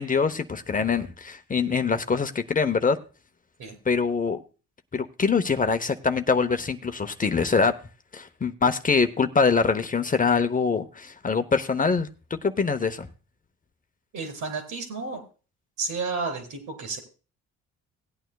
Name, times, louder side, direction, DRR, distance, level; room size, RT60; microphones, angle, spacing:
voice 1, 0.0-3.0 3.9-4.4 4.9-7.7 8.1-13.1, left 5 dB, 25° left, 0.8 m, -24 dB
voice 2, 14.1-15.2 15.8-17.0, right 4 dB, 80° right, 4.1 m, -31 dB
18.0 x 9.1 x 2.3 m
cardioid pair, 90°, 30 cm